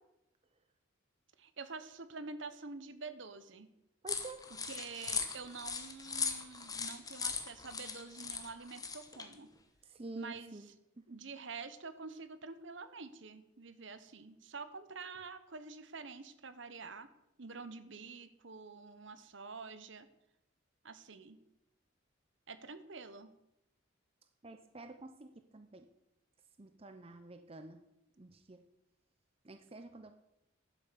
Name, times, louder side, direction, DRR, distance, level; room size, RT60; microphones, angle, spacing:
voice 1, 1.4-3.7 4.6-9.5 10.1-10.7 11.1-17.1 17.4-20.1 20.8-21.4 22.5-23.3, right 4 dB, 60° right, 11 dB, 1.0 m, -47 dB
voice 2, 4.0-4.4 9.9-10.7 11.1-11.2 24.4-25.9 26.6-27.8 28.2-28.6 29.4-30.1, right 2 dB, 30° right, 8 dB, 0.6 m, -49 dB
sound 1, 4.1-9.3, left 5 dB, 15° left, 1.1 m, -39 dB
11.5 x 7.8 x 6.9 m, 0.87 s
head